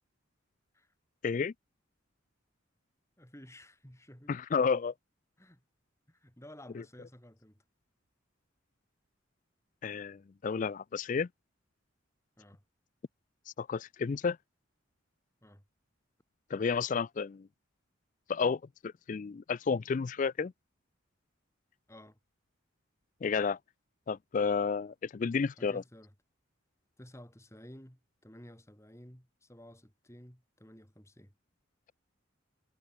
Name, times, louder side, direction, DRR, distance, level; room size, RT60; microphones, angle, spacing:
voice 1, 3.2-4.3 5.4-5.6 6.1-7.6 12.4-12.6 15.4-15.6 21.9-22.2 25.6-26.1 27.0-31.3, equal, 15° left, 4.2 m, -53 dB
voice 2, 4.3-4.9 6.7-6.8 9.8-11.3 13.6-14.4 16.5-17.5 18.3-20.5 23.2-23.6 24.1-25.8, left 5 dB, 40° left, 0.3 m, -31 dB
head